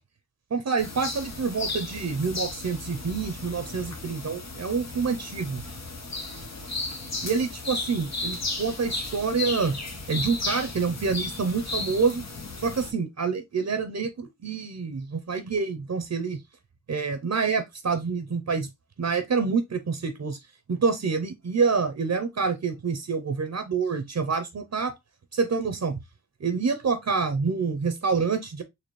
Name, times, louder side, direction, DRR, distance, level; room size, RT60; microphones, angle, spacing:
voice 1, 0.5-5.6 7.2-9.8 10.1-12.3 12.6-16.4 16.9-18.7 19.0-20.4 20.7-24.9 25.3-26.0 26.4-28.6, right 5 dB, 65° right, 0.7 m, -27 dB
sound 1, 0.8-12.9, left 3 dB, 60° left, 1.1 m, -35 dB
4.2 x 2.8 x 3.1 m
wide cardioid pair, 70°, 29 cm